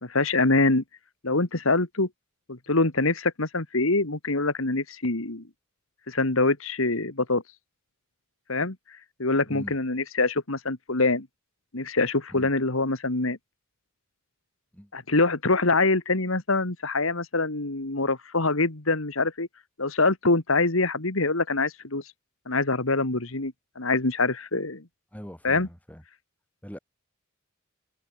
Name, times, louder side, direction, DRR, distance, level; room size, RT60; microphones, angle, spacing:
voice 1, 0.0-0.8 1.2-2.1 2.5-5.4 6.1-7.4 8.5-8.8 9.2-11.3 11.7-13.4 14.9-19.5 19.8-22.0 22.5-24.8 25.4-25.7, left 3 dB, 70° left, 2.3 m, -24 dB
voice 2, 25.1-26.0 26.6-26.8, equal, 5° left, 4.8 m, -41 dB
head